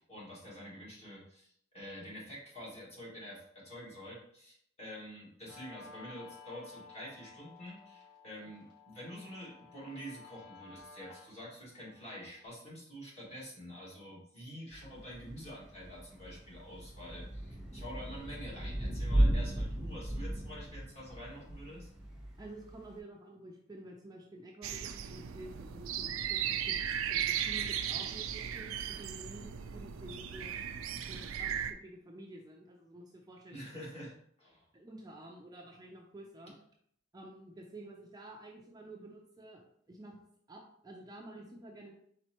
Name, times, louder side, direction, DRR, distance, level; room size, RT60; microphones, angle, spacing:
voice 1, 0.0-21.9 33.5-34.7, equal, 30° left, -6 dB, 1.8 m, -47 dB
Guitar, 5.5-12.5, left 4 dB, 80° left, 1.8 m, -55 dB
Thunder / Rain, 14.7-23.0, right 1 dB, ahead, 1.1 m, -35 dB
voice 2, 22.4-33.6 34.7-36.5 37.1-40.2 40.5-41.9, right 1 dB, 20° right, 0 dB, 0.5 m, -50 dB
sound 1, 24.6-31.7, right 9 dB, 80° right, 0.4 m, -36 dB
4.3 x 4.1 x 2.9 m, 0.68 s
head